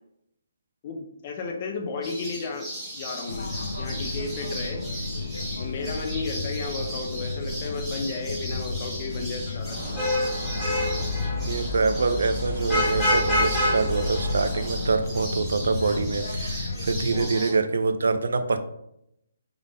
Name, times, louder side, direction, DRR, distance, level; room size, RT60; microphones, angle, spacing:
voice 1, 0.8-2.7 2.9-3.5 3.8-4.8 5.6-10.0 17.1-17.6, left 4 dB, 30° left, 2 dB, 0.5 m, -33 dB
sound 1, 2.0-17.5, equal, 10° right, 1.1 m, -38 dB
sound 2, 3.3-17.2, left 2 dB, 75° left, 0.6 m, -33 dB
Vehicle horn car horn honking / Traffic noise roadway noise, 9.7-15.0, left 1 dB, 10° left, 1.7 m, -27 dB
voice 2, 11.5-18.6, right 4 dB, 75° right, 9 dB, 0.5 m, -25 dB
3.6 x 3.5 x 3.8 m, 0.78 s
hypercardioid pair, 170°, 0 cm